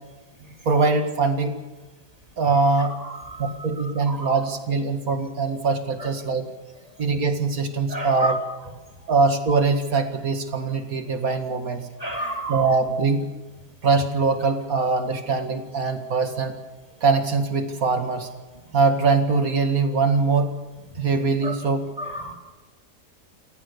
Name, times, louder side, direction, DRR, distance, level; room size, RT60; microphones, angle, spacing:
voice 1, 0.7-1.5 2.4-3.0 3.4-6.5 7.0-8.4 9.1-11.8 12.5-13.3 13.8-16.5 17.0-18.3 18.7-20.5 21.0-21.9, right 4 dB, 55° right, 6 dB, 2.4 m, -22 dB
voice 2, 2.8-3.7 4.1-4.4 7.9-8.4 12.0-12.7 21.4-21.6 22.0-22.3, right 1 dB, 20° right, 3 dB, 2.5 m, -31 dB
28.5 x 14.0 x 6.9 m, 1.2 s
omnidirectional pair, 1.8 m